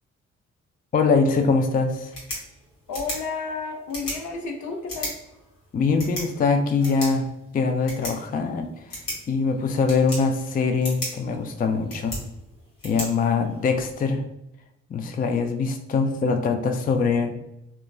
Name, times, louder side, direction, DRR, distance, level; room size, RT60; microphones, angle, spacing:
voice 1, 0.9-2.1 5.7-7.3 7.5-9.0 9.3-12.2 12.8-14.2 14.9-17.3, left 4 dB, 30° left, 6 dB, 0.4 m, -23 dB
sound 1, 1.9-13.9, left 1 dB, 85° left, 1.2 m, -38 dB
voice 2, 2.9-5.2, left 4 dB, 65° left, 3 dB, 0.6 m, -31 dB
3.0 x 2.2 x 2.3 m, 0.83 s
supercardioid pair, 50°, 31 cm